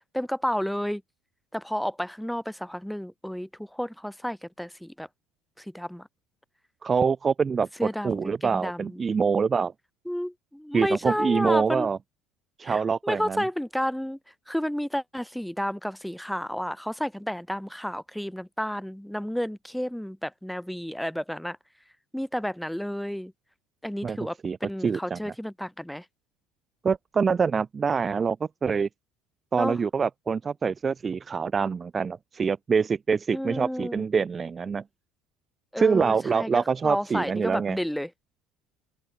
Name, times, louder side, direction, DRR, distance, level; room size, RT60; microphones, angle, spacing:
voice 1, 0.1-1.0 1.5-5.1 5.6-6.1 7.8-9.0 10.1-11.9 12.6-14.2 14.5-21.6 22.1-23.3 23.8-26.0 29.5-29.8 33.3-34.1 35.7-38.1, equal, ahead, 2.2 m, -31 dB
voice 2, 6.8-7.7 8.0-9.7 10.7-12.0 12.6-13.4 24.0-24.2 24.4-24.6 24.8-25.2 26.8-28.4 28.6-28.9 29.5-34.8 35.8-37.8, right 5 dB, 30° right, 0.6 m, -25 dB
open air
hypercardioid pair, 80°, 0 cm